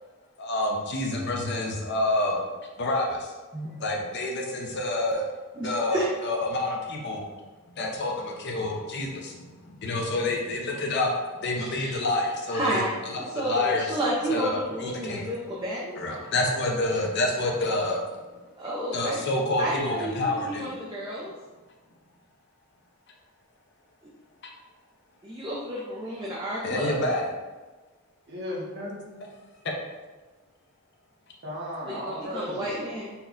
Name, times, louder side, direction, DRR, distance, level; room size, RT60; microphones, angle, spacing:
voice 1, 0.4-2.5 2.8-3.3 3.8-5.2 5.6-7.3 7.8-9.5 9.8-11.1 11.4-14.0 14.3-15.3 15.9-18.0 18.9-20.7 26.6-27.3 29.1-29.2 29.6-29.7, left 2 dB, 50° left, 0 dB, 0.6 m, -28 dB
voice 2, 5.6-6.0 11.6-11.9 12.5-12.9 13.3-15.9 18.6-19.2 19.6-21.3 25.2-27.1 31.9-33.1, right 1 dB, 20° right, -6 dB, 0.5 m, -31 dB
voice 3, 28.3-28.9 31.4-32.8, left 1 dB, 50° right, -5 dB, 1.1 m, -35 dB
4.3 x 2.3 x 3.7 m, 1.3 s
head